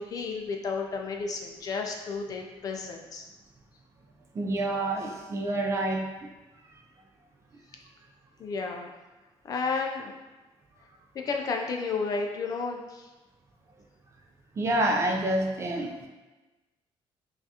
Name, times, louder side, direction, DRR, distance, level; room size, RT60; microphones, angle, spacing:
voice 1, 0.0-3.3 8.4-8.9 9.4-10.1 11.1-13.1, left 4 dB, 40° left, 2 dB, 0.4 m, -32 dB
voice 2, 4.3-6.1 14.6-16.1, right 1 dB, 30° right, 1 dB, 0.4 m, -27 dB
5.6 x 2.4 x 2.8 m, 1.2 s
cardioid pair, 170°, 10 cm